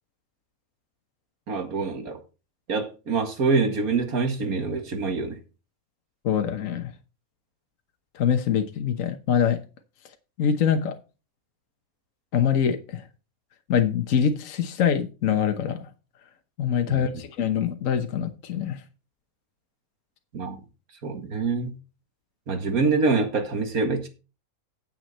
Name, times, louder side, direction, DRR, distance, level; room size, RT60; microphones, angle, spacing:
voice 1, 1.5-2.2 2.7-5.4 16.9-17.1 20.3-20.6 21.0-21.7 22.5-24.1, right 4 dB, 85° right, 6 dB, 2.3 m, -25 dB
voice 2, 6.2-6.9 8.1-9.6 10.4-11.0 12.3-13.0 13.7-15.9 16.6-18.8, left 8 dB, 65° left, 7 dB, 1.4 m, -24 dB
9.1 x 8.9 x 4.2 m, 0.32 s
omnidirectional pair, 1.5 m